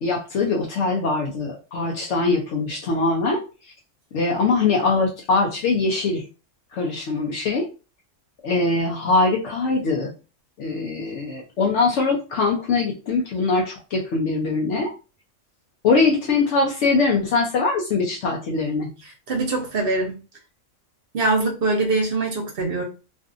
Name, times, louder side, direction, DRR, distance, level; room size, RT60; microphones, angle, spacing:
voice 1, 0.0-3.4 4.1-6.2 6.7-7.7 8.4-10.1 10.6-14.9 15.8-18.9, left 3 dB, 75° left, -1 dB, 0.9 m, -22 dB
voice 2, 19.0-20.2 21.1-22.8, right 3 dB, 55° right, 1 dB, 0.8 m, -23 dB
2.6 x 2.5 x 2.4 m, 0.32 s
omnidirectional pair, 1.3 m